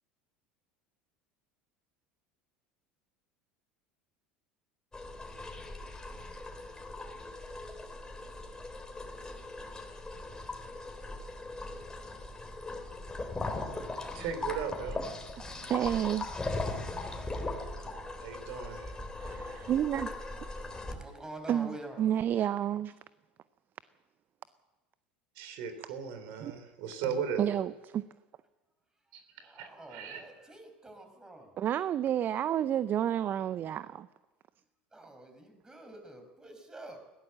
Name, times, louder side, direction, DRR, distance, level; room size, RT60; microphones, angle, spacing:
sound 1, 4.9-20.9, left 2 dB, 15° left, 3.7 m, -39 dB
voice 1, 14.1-15.0 18.2-18.9 25.4-27.4 29.1-29.2 29.6-30.2, right 7 dB, 60° right, 9 dB, 3.5 m, -37 dB
voice 2, 15.7-16.3 19.2-20.1 21.5-22.9 26.4-26.6 27.4-28.0 31.6-34.1, right 10 dB, 40° right, 16 dB, 0.6 m, -30 dB
voice 3, 20.9-22.1 29.3-31.5 34.9-37.0, right 1 dB, 15° right, 6 dB, 5.2 m, -47 dB
21.0 x 16.5 x 7.7 m, 1.2 s
hypercardioid pair, 75°, 5 cm